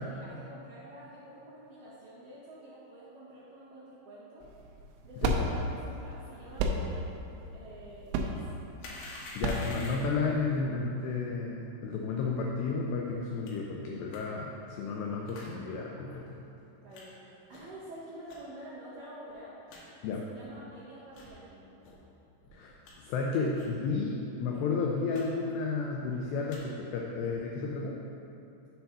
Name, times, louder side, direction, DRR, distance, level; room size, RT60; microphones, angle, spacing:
voice 1, 0.0-4.5 5.0-7.0 7.5-8.3 16.8-19.6 20.0-21.8, right 1 dB, 55° right, -13 dB, 2.4 m, -48 dB
sound 1, 4.4-10.6, right 2 dB, 85° right, 3.1 m, -33 dB
voice 2, 5.2-5.5 9.4-16.5 20.0-20.2 22.5-28.0, left 4 dB, 90° left, -1 dB, 2.4 m, -32 dB
sound 2, 8.8-10.2 13.5-13.6 14.1-14.2 15.3-15.5 16.1-16.2 16.9-17.0 17.5-17.8 18.3-18.4 18.9-19.0 19.3-19.4 19.7-19.8 20.4-20.5 21.1-21.3 21.8-21.9 22.4-22.9 23.5-23.8 24.0-24.1 24.4-24.6 25.1-25.2 25.5-25.9 26.3-26.6 27.2-27.4, left 2 dB, 70° left, 3.2 m, -47 dB
7.6 x 4.5 x 5.5 m, 2.9 s
omnidirectional pair, 5.5 m